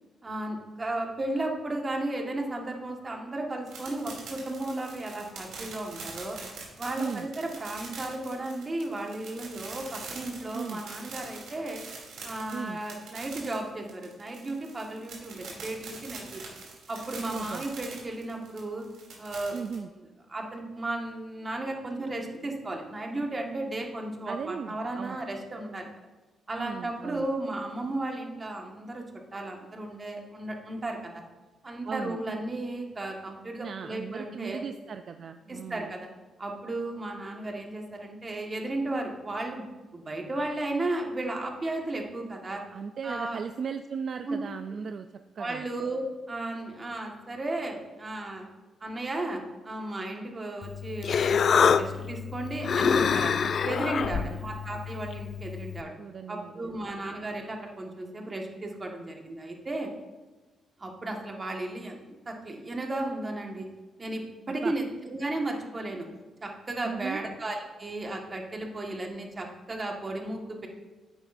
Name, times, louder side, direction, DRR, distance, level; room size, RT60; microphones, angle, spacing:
voice 1, 0.2-6.4 6.8-11.8 12.2-16.4 16.9-18.8 19.2-19.6 20.3-25.9 26.5-29.0 29.3-31.2 31.6-34.6 35.5-36.1 36.4-39.6 39.9-42.6 43.0-43.4 44.3-44.4 45.4-48.4 48.8-55.9 56.3-59.9 60.8-63.7 64.0-66.1 66.4-70.7, right 2 dB, 30° right, 1 dB, 1.6 m, -34 dB
sound 1, 3.7-19.7, right 4 dB, 90° right, 2.8 m, -43 dB
voice 2, 7.0-7.3 10.5-10.8 12.5-12.8 17.3-17.6 19.5-19.9 24.3-25.2 26.6-27.3 31.8-32.2 33.6-35.9 42.7-45.1 45.4-45.7 53.4-53.5 54.0-54.4 56.0-56.9 64.6-64.7 66.8-67.2, right 6 dB, 55° right, 8 dB, 0.4 m, -37 dB
Human voice, 50.6-55.8, left 6 dB, 55° left, 0.3 m, -26 dB
9.7 x 8.9 x 2.6 m, 1.2 s
cardioid pair, 100°, 0 cm